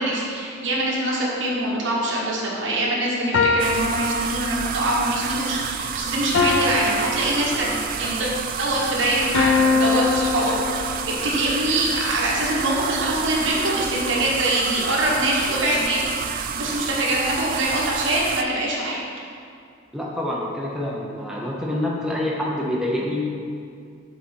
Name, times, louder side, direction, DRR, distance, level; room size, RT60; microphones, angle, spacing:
voice 1, 0.0-8.3 8.6-19.0, right 1 dB, 70° right, -4 dB, 1.3 m, -24 dB
sound 1, 3.3-4.9 6.3-8.0 9.3-11.2, left 4 dB, 80° left, 0.5 m, -23 dB
sound 2, 3.6-18.4, right 7 dB, 45° right, 0.3 m, -30 dB
voice 2, 19.9-23.2, left 1 dB, 5° right, -5 dB, 0.7 m, -26 dB
7.0 x 4.0 x 4.5 m, 2.3 s
head